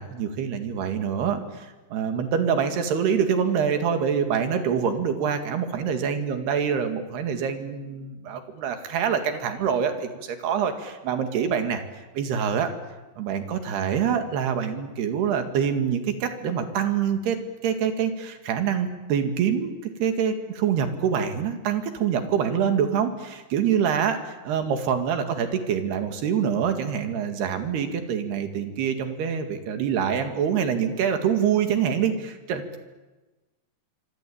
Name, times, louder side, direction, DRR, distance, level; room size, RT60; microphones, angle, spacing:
voice 1, 0.0-12.8 13.2-17.4 17.6-19.7 20.0-32.8, right 7 dB, 70° right, 7 dB, 4.1 m, -25 dB
25.5 x 25.5 x 8.7 m, 1.2 s
omnidirectional pair, 5.0 m